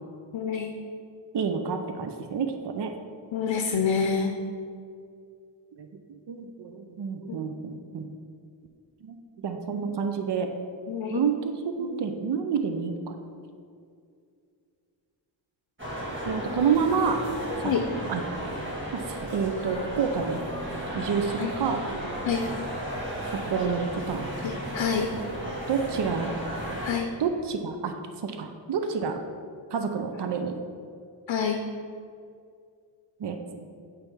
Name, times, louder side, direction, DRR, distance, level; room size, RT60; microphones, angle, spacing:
voice 1, 0.3-0.7 3.3-4.3 7.3-7.4 10.9-11.2 17.6-17.9 21.4-21.5 22.3-22.5 24.4-25.1 26.8-27.1 31.3-31.6, left 6 dB, 80° left, 4 dB, 0.7 m, -27 dB
voice 2, 1.3-2.9 5.8-8.1 9.0-9.2 9.4-10.5 11.1-13.2 16.3-17.2 18.1-18.2 18.9-20.4 20.9-21.8 23.3-24.2 25.7-26.3 27.2-27.9 28.2-29.2 29.7-30.6 33.2-33.4, right 6 dB, 65° right, 6 dB, 0.7 m, -28 dB
sound 1, 15.8-26.9, right 1 dB, 25° right, 1.7 m, -34 dB
8.9 x 3.4 x 6.1 m, 2.3 s
wide cardioid pair, 105°, 45 cm